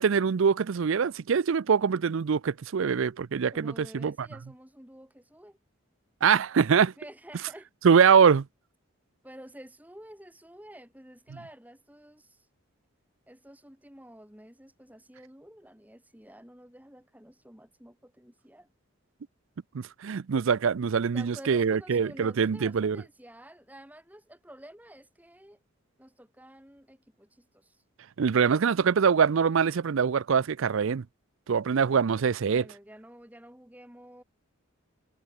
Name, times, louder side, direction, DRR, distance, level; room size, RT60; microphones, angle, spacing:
voice 1, 0.0-4.1 6.2-6.9 7.8-8.5 19.7-23.0 28.2-31.0 31.5-32.6, right 6 dB, 65° right, 0.4 m, -23 dB
voice 2, 3.5-5.6 7.0-7.7 9.2-12.5 13.3-18.7 21.1-25.6 26.0-27.8 32.4-34.2, right 1 dB, 5° right, 3.3 m, -50 dB
head